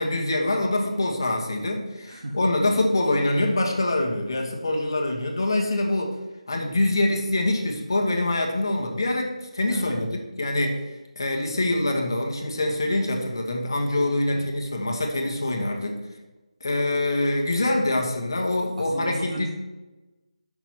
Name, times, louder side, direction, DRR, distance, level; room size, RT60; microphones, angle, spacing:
voice 1, 0.0-6.2 6.5-15.9 16.6-19.5, left 1 dB, 40° left, 1 dB, 1.2 m, -25 dB
voice 2, 2.1-2.5 9.6-10.1 14.3-14.5 18.8-19.5, right 1 dB, 85° right, 0 dB, 1.1 m, -34 dB
6.0 x 5.7 x 6.0 m, 1.1 s
figure-of-eight pair, 180°, 4 cm